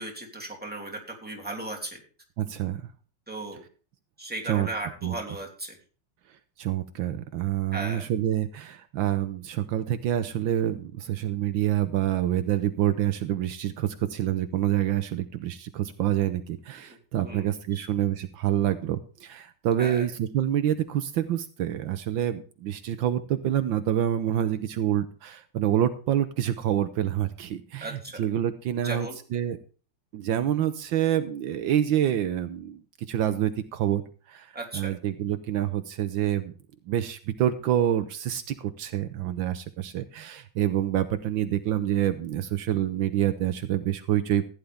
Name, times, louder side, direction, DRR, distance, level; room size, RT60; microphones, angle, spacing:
voice 1, 0.0-2.0 3.3-3.6 4.2-5.8 7.7-8.1 16.9-17.9 19.8-20.1 27.8-28.2 28.7-29.2 34.5-34.9, right 2 dB, 5° right, -1 dB, 2.9 m, -36 dB
voice 2, 2.4-2.8 4.5-4.7 5.0-5.1 6.6-29.6 30.1-32.8 33.1-34.0 34.3-34.5 34.7-36.5 36.9-44.5, right 11 dB, 75° right, 11 dB, 1.5 m, -27 dB
15.5 x 10.5 x 3.5 m, 0.38 s
omnidirectional pair, 2.1 m